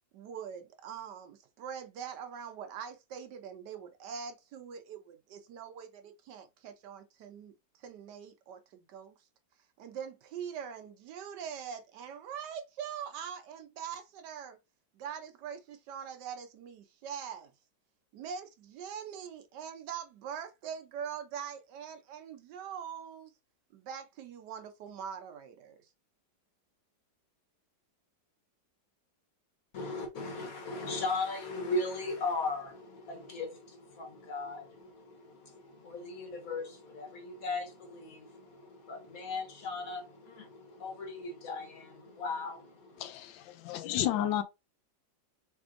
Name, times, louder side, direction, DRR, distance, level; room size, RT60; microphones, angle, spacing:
voice 1, 0.1-9.2 9.8-14.6 14.9-17.5 18.1-23.3 23.7-25.9, right 8 dB, 70° right, 1.2 m, -43 dB
voice 2, 29.7-43.1, left 3 dB, 55° left, 1.2 m, -38 dB
voice 3, 43.0-44.4, left 11 dB, 85° left, 1.3 m, -32 dB
3.6 x 3.4 x 2.5 m
omnidirectional pair, 2.0 m